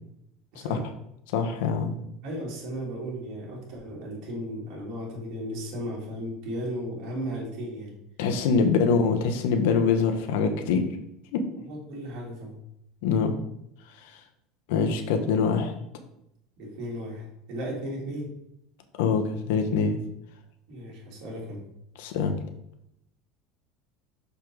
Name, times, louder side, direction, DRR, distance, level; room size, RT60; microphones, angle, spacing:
voice 1, 0.5-0.8 2.2-7.9 11.7-12.6 16.6-18.3 20.7-21.6, equal, 55° right, -4 dB, 2.9 m, -35 dB
voice 2, 1.3-2.0 8.2-10.9 11.3-11.4 13.0-13.3 13.9-14.2 14.7-15.7 19.0-20.0 22.0-22.4, left 5 dB, 80° left, 6 dB, 1.1 m, -24 dB
6.4 x 5.5 x 3.9 m, 0.78 s
supercardioid pair, 140°, 0 cm